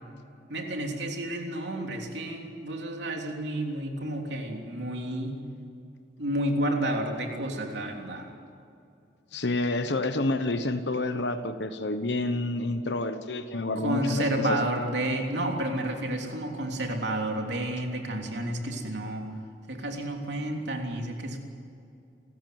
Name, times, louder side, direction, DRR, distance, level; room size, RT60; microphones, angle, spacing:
voice 1, 0.5-5.4 6.2-8.3 13.8-19.2 19.7-21.4, right 1 dB, 65° right, 2 dB, 3.4 m, -30 dB
voice 2, 9.3-14.6, left 2 dB, 65° left, 9 dB, 1.1 m, -29 dB
28.5 x 14.5 x 9.4 m, 2.6 s
head